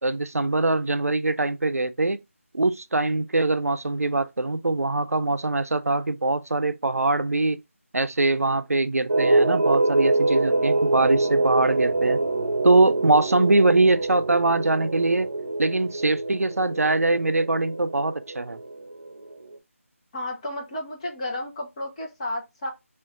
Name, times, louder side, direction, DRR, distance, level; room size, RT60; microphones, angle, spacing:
voice 1, 0.0-2.2 2.5-7.6 7.9-12.2 12.6-15.3 15.6-18.6, right 2 dB, 85° right, 0.5 m, -23 dB
sound 1, 9.1-19.6, right 2 dB, 55° right, 0.7 m, -25 dB
voice 2, 20.1-22.7, left 1 dB, 25° left, 0.9 m, -32 dB
3.6 x 2.5 x 3.6 m
figure-of-eight pair, 165°, 8 cm